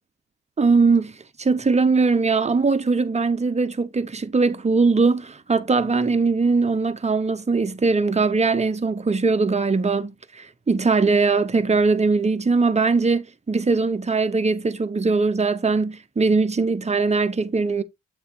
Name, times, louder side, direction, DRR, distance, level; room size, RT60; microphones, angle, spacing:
voice 1, 0.6-1.1 1.4-17.8, right 4 dB, 20° right, 0.8 m, -21 dB
8.4 x 3.2 x 4.5 m
cardioid pair, 90°, 30 cm